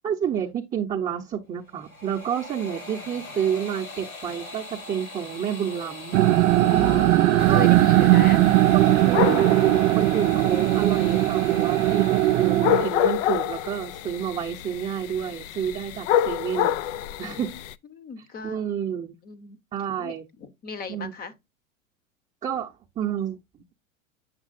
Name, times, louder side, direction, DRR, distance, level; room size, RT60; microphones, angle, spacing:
voice 1, 0.0-6.4 7.5-7.7 8.7-16.8 17.2-17.5 18.4-19.1 19.7-20.3 20.9-21.1 22.4-23.7, right 8 dB, 20° right, 0.8 m, -29 dB
sound 1, 1.6-12.7, left 2 dB, 85° left, 3.6 m, -42 dB
voice 2, 3.0-3.4 6.7-8.4 17.2-18.8 19.2-19.6 20.0-21.3, left 5 dB, 20° left, 0.9 m, -38 dB
sound 2, 6.1-12.9, right 15 dB, 65° right, 0.5 m, -19 dB
sound 3, 7.4-17.7, left 11 dB, 60° left, 0.5 m, -29 dB
7.5 x 6.0 x 2.5 m
hypercardioid pair, 105°, 42 cm